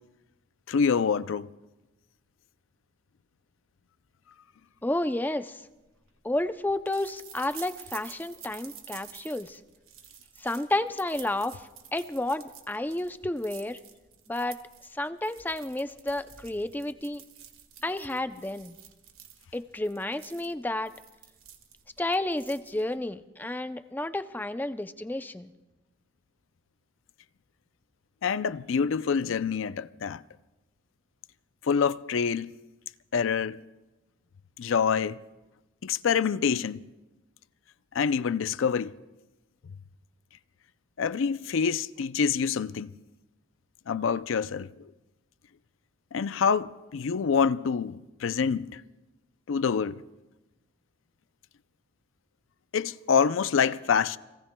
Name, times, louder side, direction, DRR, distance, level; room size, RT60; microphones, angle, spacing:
voice 1, 0.7-1.5 28.2-30.2 31.6-32.5 33.1-33.6 34.6-35.2 35.8-36.8 37.9-39.0 41.0-42.9 43.9-44.7 46.1-48.8 49.5-50.0 52.7-54.2, left 6 dB, 75° left, 0.4 m, -26 dB
voice 2, 4.8-5.6 6.2-9.6 10.4-11.6 11.9-13.8 14.3-14.6 14.9-17.2 17.8-18.8 19.5-20.9 22.0-25.5, left 1 dB, 10° left, 0.4 m, -31 dB
sound 1, 5.6-23.1, right 9 dB, 90° right, 1.6 m, -50 dB
29.5 x 22.0 x 2.2 m
head